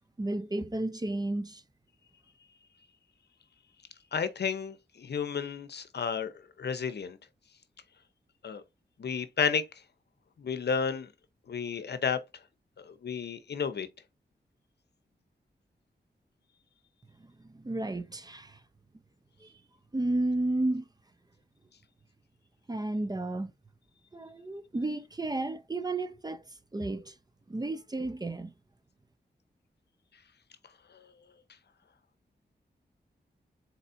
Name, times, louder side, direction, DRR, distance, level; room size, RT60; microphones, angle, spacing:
voice 1, 0.2-1.6 17.2-18.6 19.4-19.5 19.9-20.8 22.7-23.5 24.1-26.5 26.7-27.1 27.5-28.5, right 2 dB, 20° right, 0.6 m, -32 dB
voice 2, 4.1-6.3 6.6-7.2 8.4-8.6 9.0-9.6 10.4-11.1 11.5-12.2 12.8-13.9 30.9-31.0, left 6 dB, 70° left, 0.7 m, -32 dB
4.1 x 4.1 x 2.6 m
cardioid pair, 55°, 18 cm